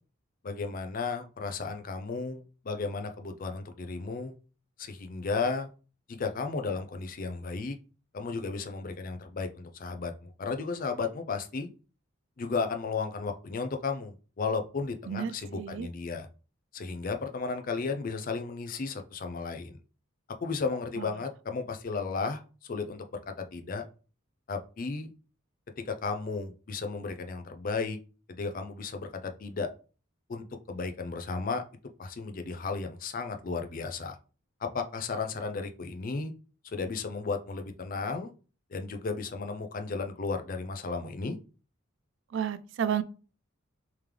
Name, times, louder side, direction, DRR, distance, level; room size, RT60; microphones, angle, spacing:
voice 1, 0.4-4.3 4.8-5.7 6.1-7.8 8.1-11.7 12.4-16.3 16.7-19.8 20.4-22.4 22.7-23.8 24.5-25.1 25.9-28.0 28.3-29.7 30.3-31.6 32.0-34.2 34.6-36.3 36.6-38.3 38.7-41.4, left 4 dB, 40° left, 0.4 m, -34 dB
voice 2, 15.1-15.9 21.0-21.1 42.3-43.0, right 8 dB, 60° right, 0.3 m, -31 dB
3.6 x 3.1 x 3.3 m
head